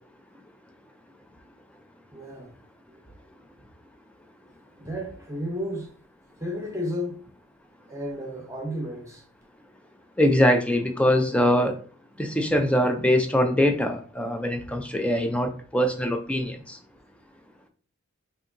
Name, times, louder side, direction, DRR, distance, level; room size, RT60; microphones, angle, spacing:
voice 1, 2.1-2.5 2.9-3.0 4.8-5.9 6.4-7.2 7.9-9.2, equal, 15° right, 0.8 m, -33 dB
voice 2, 10.2-11.7 12.2-16.8, equal, 5° left, 0.4 m, -23 dB
4.7 x 2.7 x 2.6 m
head